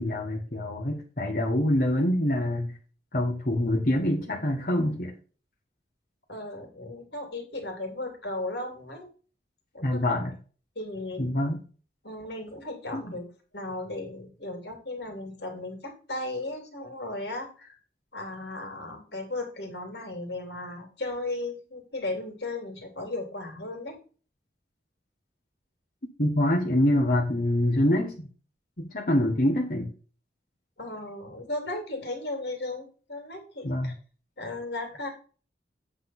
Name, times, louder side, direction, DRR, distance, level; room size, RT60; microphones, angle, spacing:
voice 1, 0.0-2.7 3.1-5.1 9.8-10.3 11.2-11.6 12.9-13.0 26.2-28.3 28.8-29.9 33.6-33.9, left 1 dB, 50° left, 1.3 m, -25 dB
voice 2, 6.3-9.1 9.7-10.1 10.7-11.3 12.0-13.2 13.5-17.8 18.1-24.0 30.8-33.9 34.4-35.1, left 2 dB, 75° left, 2.6 m, -36 dB
8.2 x 3.8 x 5.6 m
head